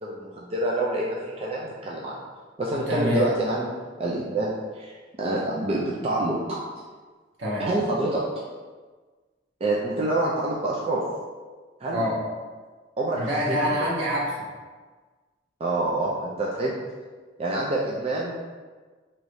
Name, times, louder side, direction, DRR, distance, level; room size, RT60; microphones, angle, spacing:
voice 1, 0.0-2.2 2.6-3.7 4.0-6.6 7.6-8.2 9.6-11.0 11.8-12.1 13.0-13.6 15.6-16.8 17.4-18.4, right 2 dB, 30° right, -4 dB, 0.4 m, -27 dB
voice 2, 2.7-3.3 7.4-7.7 11.9-12.2 13.1-14.5, equal, 70° right, -6 dB, 1.2 m, -26 dB
4.7 x 3.0 x 2.6 m, 1.4 s
head